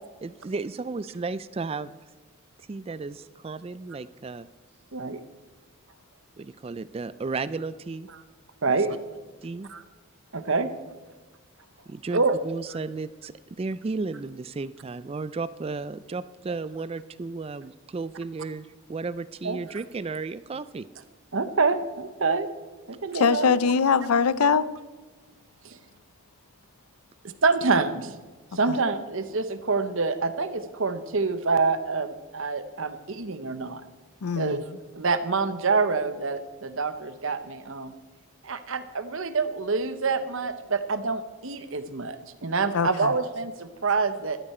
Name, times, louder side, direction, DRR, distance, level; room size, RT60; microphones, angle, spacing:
voice 1, 0.2-1.9 2.6-4.5 6.4-8.1 8.7-8.8 9.4-9.7 11.9-20.9, right 4 dB, 25° right, 0.3 m, -34 dB
voice 2, 8.6-9.0 9.7-9.8 10.3-10.7 12.1-12.4 19.4-19.6 21.3-22.5 22.9-23.5 25.6-25.8 27.4-28.1 28.5-33.8 34.4-37.9 38.4-42.2 42.4-44.4, right 4 dB, 60° right, 0.9 m, -26 dB
voice 3, 23.1-24.7 34.2-34.6 42.7-43.1, left 5 dB, 80° left, 0.5 m, -22 dB
14.0 x 12.5 x 4.3 m
head